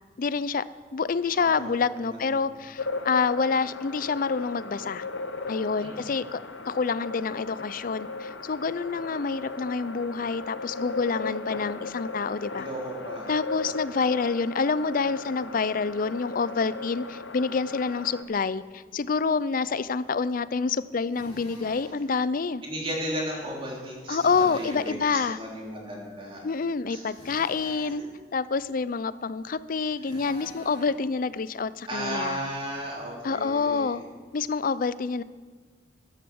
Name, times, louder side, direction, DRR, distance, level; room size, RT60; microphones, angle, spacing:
voice 1, 0.2-0.6 0.9-5.0 5.5-6.4 6.6-12.7 13.3-22.6 24.1-25.4 26.4-28.0 28.3-32.4 33.2-34.0 34.3-35.2, left 5 dB, 45° left, 16 dB, 0.5 m, -27 dB
voice 2, 1.4-1.7 2.0-2.4 5.8-6.1 12.5-13.3 22.6-26.4 26.9-27.0 27.6-27.7 30.0-30.2 31.9-33.9, equal, 30° right, -2 dB, 3.3 m, -35 dB
sound 1, 2.8-18.2, left 3 dB, 70° left, 0.9 m, -37 dB
Drill, 21.1-22.0 24.1-25.0 27.1-28.0 30.0-31.0, left 1 dB, 25° left, 4.9 m, -46 dB
14.0 x 10.5 x 7.0 m, 1.5 s
head